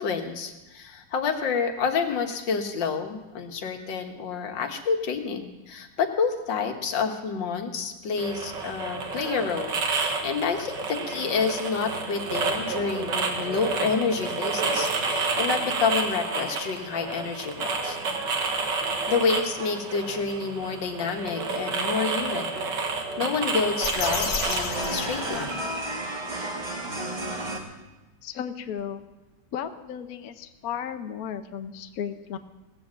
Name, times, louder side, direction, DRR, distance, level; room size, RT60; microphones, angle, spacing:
voice 1, 0.0-18.0 19.1-22.6 23.2-25.6, left 5 dB, 85° left, 5 dB, 1.9 m, -28 dB
sound 1, 8.2-25.7, right 4 dB, 75° right, 2.1 m, -30 dB
sound 2, 22.6-27.6, right 1 dB, 25° right, 1.7 m, -34 dB
sound 3, 23.8-26.0, left 4 dB, 40° left, 1.3 m, -32 dB
voice 2, 28.2-29.0 29.5-32.4, left 8 dB, 60° left, 9 dB, 1.1 m, -34 dB
17.5 x 7.4 x 7.4 m, 1.1 s
omnidirectional pair, 2.0 m